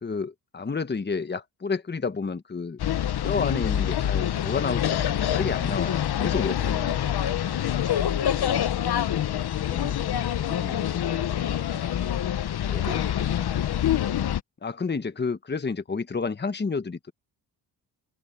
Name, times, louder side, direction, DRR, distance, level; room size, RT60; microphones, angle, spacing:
voice 1, 0.0-2.8 3.2-7.0 12.7-12.9 14.6-17.1, left 4 dB, 25° left, 1.2 m, -30 dB
sound 1, 2.8-14.4, left 10 dB, 60° left, 1.1 m, -26 dB
voice 2, 6.3-6.7 7.4-8.7 9.6-12.4 12.7-13.6, right 2 dB, 15° right, 3.7 m, -46 dB
open air
cardioid pair, 75°, 43 cm